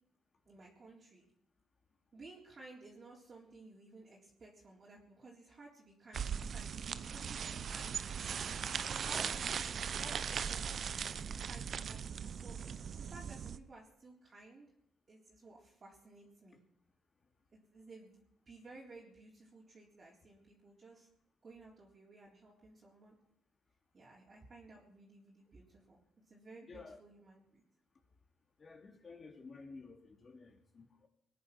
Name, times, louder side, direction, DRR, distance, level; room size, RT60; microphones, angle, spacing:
voice 1, 0.5-1.3 2.1-8.3 8.8-9.3 9.9-10.6 11.2-14.7 15.1-16.6 17.5-21.1 21.4-23.2 23.9-26.0 26.3-27.6, right 2 dB, 40° right, -4 dB, 3.9 m, -56 dB
sound 1, 6.1-13.6, right 7 dB, 55° right, 0.7 m, -39 dB
voice 2, 26.6-27.0 28.6-31.1, left 4 dB, 40° left, 2 dB, 3.0 m, -53 dB
20.5 x 10.0 x 6.1 m, 0.73 s
cardioid pair, 90°, 0 cm